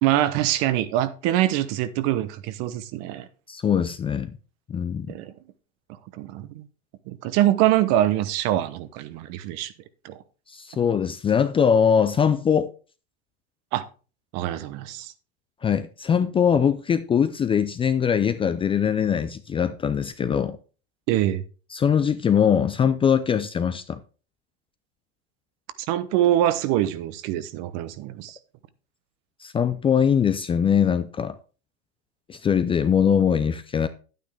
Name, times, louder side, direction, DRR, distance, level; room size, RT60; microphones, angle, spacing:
voice 1, 0.0-3.3 5.1-5.3 6.1-6.7 7.1-9.7 10.0-10.2 13.7-13.9 14.3-15.1 21.1-21.4 25.9-28.4, right 13 dB, 50° right, 1.0 m, -24 dB
voice 2, 3.5-4.4 4.7-5.2 10.5-12.7 15.6-20.6 21.7-24.0 29.4-31.4 32.3-33.9, left 7 dB, 15° left, 0.5 m, -22 dB
9.7 x 9.2 x 3.4 m
supercardioid pair, 120°, 33 cm